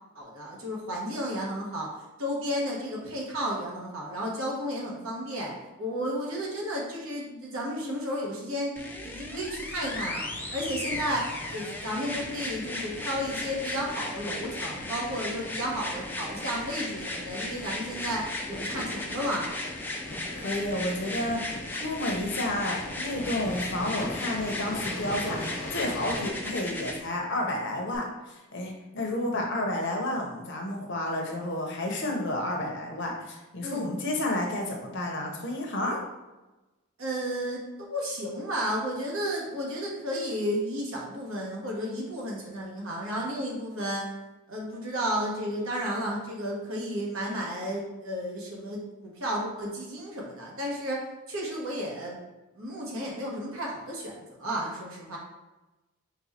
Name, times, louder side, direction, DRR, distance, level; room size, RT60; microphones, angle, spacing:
voice 1, 0.1-1.9 2.2-5.5 5.8-8.7 9.0-19.5 33.6-33.8 37.0-44.0 44.5-52.2 52.6-55.2, equal, 70° right, -3 dB, 1.1 m, -33 dB
sound 1, 8.8-27.0 27.9-28.0, left 2 dB, 10° left, 0.3 m, -36 dB
sound 2, 9.8-26.3, left 1 dB, 85° left, 1.1 m, -42 dB
voice 2, 20.3-36.0, left 1 dB, 55° left, 1 dB, 0.8 m, -31 dB
4.1 x 2.2 x 4.2 m, 1.1 s
head